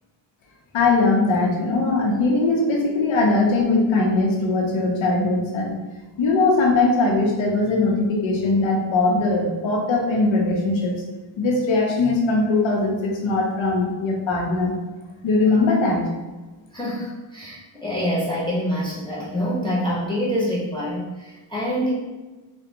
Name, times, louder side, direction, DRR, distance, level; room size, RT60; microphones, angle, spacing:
voice 1, 0.7-5.7 6.2-10.9 11.4-14.7 15.2-16.1, left 3 dB, 85° left, 0 dB, 0.7 m, -20 dB
voice 2, 16.7-21.9, equal, 10° left, -7 dB, 0.7 m, -26 dB
2.4 x 2.2 x 2.7 m, 1.2 s
cardioid pair, 70°, 45 cm